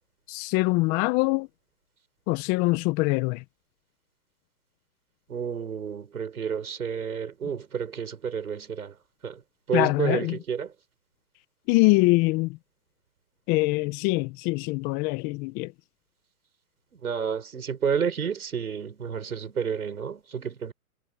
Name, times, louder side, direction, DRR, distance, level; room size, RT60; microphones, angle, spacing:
voice 1, 0.3-1.5 2.3-3.4 9.7-10.4 11.7-12.6 13.5-15.7, left 23 dB, 20° left, 1.2 m, -23 dB
voice 2, 5.3-9.0 9.2-9.4 9.7-10.7 17.0-20.7, right 7 dB, 75° right, 5.6 m, -30 dB
hypercardioid pair, 145°, 44 cm